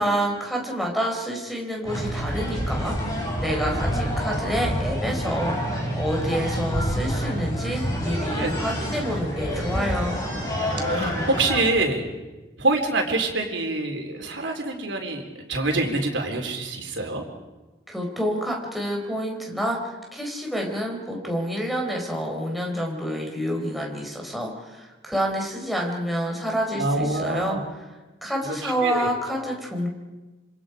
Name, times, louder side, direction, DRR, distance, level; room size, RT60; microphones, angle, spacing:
voice 1, 0.0-10.2 17.9-27.9 28.2-29.9, equal, ahead, -1 dB, 4.3 m, -28 dB
sound 1, 1.8-11.6, equal, 20° left, 6.9 m, -27 dB
voice 2, 10.9-12.1 12.6-15.2 15.5-17.2 26.7-27.6 28.4-28.5 28.8-29.4, right 2 dB, 85° right, 3 dB, 3.8 m, -25 dB
26.5 x 26.0 x 5.1 m, 1.2 s
head